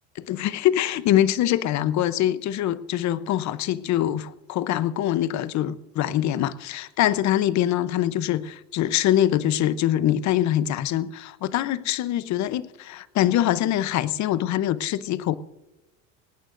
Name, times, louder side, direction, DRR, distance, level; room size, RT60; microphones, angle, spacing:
voice 1, 0.2-15.4, left 12 dB, 50° left, 0.8 m, -24 dB
18.5 x 18.0 x 2.6 m
supercardioid pair, 110°, 37 cm